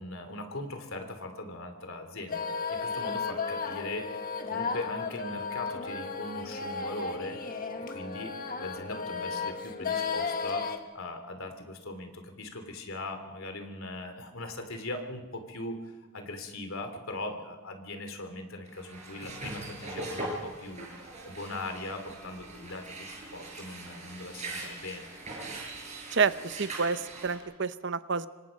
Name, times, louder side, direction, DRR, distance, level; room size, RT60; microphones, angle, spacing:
voice 1, 0.0-7.5 7.9-10.7 10.9-15.8 16.1-20.9 21.2-25.1, left 2 dB, 75° left, 6 dB, 3.1 m, -40 dB
sound 1, 2.3-10.8, left 5 dB, 40° left, 1.6 m, -34 dB
sound 2, 18.7-27.4, right 2 dB, 35° right, 6.7 m, -41 dB
voice 2, 26.1-28.3, right 5 dB, 55° right, 13 dB, 0.8 m, -29 dB
26.5 x 25.5 x 5.3 m, 1.2 s
head